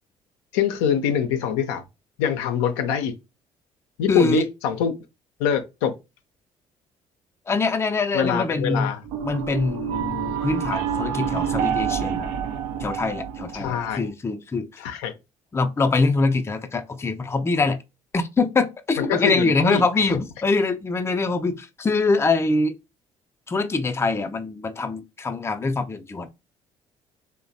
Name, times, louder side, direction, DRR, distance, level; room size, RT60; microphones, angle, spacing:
voice 1, 0.5-1.8 2.2-3.1 4.0-4.9 5.4-5.9 8.1-9.0 13.5-14.1 14.8-15.1 19.0-19.8, left 8 dB, 75° left, 0.4 m, -24 dB
voice 2, 4.1-4.5 7.5-8.9 9.2-12.3 12.8-14.7 15.5-17.8 18.1-22.8 23.5-26.4, left 3 dB, 15° left, 0.4 m, -24 dB
sound 1, 9.0-14.1, right 8 dB, 75° right, 0.4 m, -28 dB
3.0 x 2.1 x 2.5 m
hypercardioid pair, 55°, 16 cm